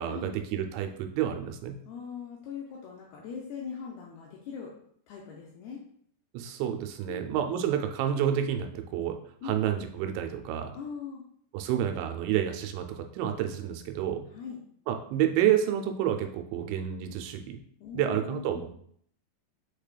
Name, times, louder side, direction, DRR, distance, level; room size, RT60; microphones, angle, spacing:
voice 1, 0.0-1.7 6.3-9.2 9.4-10.7 11.5-14.3 14.9-17.6 17.9-18.8, right 10 dB, 90° right, 6 dB, 2.9 m, -29 dB
voice 2, 1.9-4.7 5.1-5.8 7.1-7.3 9.4-9.6 10.7-11.2 14.3-14.6 17.8-18.7, left 6 dB, 85° left, -2 dB, 2.3 m, -40 dB
6.8 x 3.3 x 2.2 m, 0.64 s
omnidirectional pair, 5.1 m